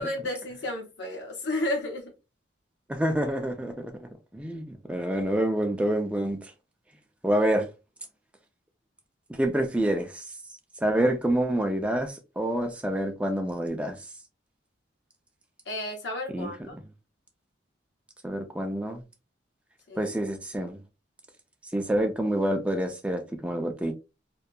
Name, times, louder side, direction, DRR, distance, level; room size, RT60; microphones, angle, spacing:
voice 1, 0.0-2.1 15.7-16.8 19.9-20.0, left 1 dB, 65° left, 0.7 m, -32 dB
voice 2, 2.9-6.5 7.2-7.7 9.3-10.2 10.8-13.9 16.3-16.5 18.2-19.0 20.0-20.8 21.7-23.9, right 1 dB, 5° right, 0.3 m, -27 dB
2.7 x 2.2 x 2.2 m
head